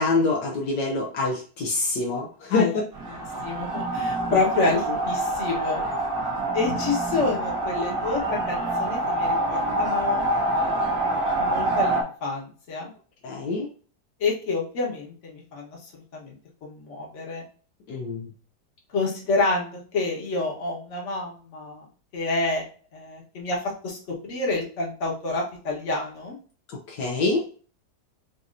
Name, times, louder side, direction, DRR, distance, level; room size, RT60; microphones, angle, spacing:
voice 1, 0.0-2.7 4.6-5.0 13.2-13.7 17.9-18.3 26.7-27.4, left 3 dB, 75° left, 1 dB, 1.4 m, -26 dB
sound 1, 2.9-12.0, right 1 dB, 85° right, 2.0 m, -26 dB
voice 2, 3.4-5.8 6.5-10.2 10.6-10.9 11.4-12.9 14.2-16.3 16.6-17.4 18.9-21.8 22.1-22.6 22.9-24.0 24.2-26.3, left 3 dB, 45° left, -1 dB, 1.5 m, -28 dB
6.4 x 2.8 x 2.6 m, 0.40 s
omnidirectional pair, 1.9 m